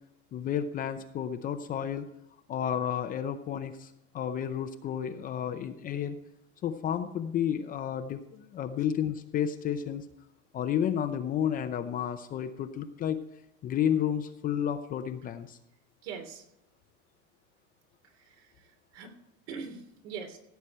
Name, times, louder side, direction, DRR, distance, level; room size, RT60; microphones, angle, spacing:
voice 1, 0.3-2.1 2.5-6.2 6.6-10.0 10.5-13.2 13.6-15.6, left 9 dB, 25° left, 8 dB, 0.6 m, -31 dB
voice 2, 16.0-16.4 18.2-19.1 19.5-20.4, right 6 dB, 65° right, 5 dB, 3.1 m, -42 dB
16.0 x 8.2 x 4.4 m, 0.84 s
supercardioid pair, 150°, 37 cm